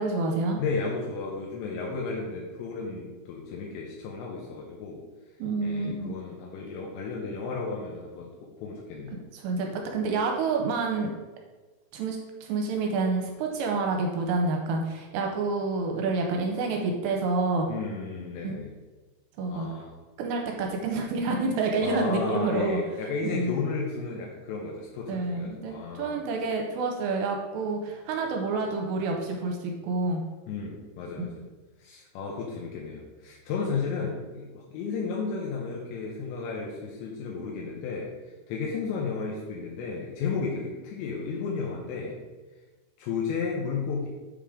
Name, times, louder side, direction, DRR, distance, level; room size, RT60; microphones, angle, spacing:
voice 1, 0.0-0.6 5.4-6.1 9.3-11.1 11.9-17.7 18.4-18.5 19.4-19.7 20.2-22.8 23.3-23.6 25.1-30.2, right 3 dB, 85° right, 2 dB, 2.8 m, -28 dB
voice 2, 0.6-5.0 5.6-8.3 8.6-9.2 17.7-18.7 19.5-19.9 21.8-26.2 30.5-31.4 31.8-38.1 38.5-42.2 43.0-44.1, left 4 dB, 80° left, -2 dB, 3.0 m, -33 dB
7.3 x 3.7 x 4.9 m, 1.3 s
omnidirectional pair, 5.1 m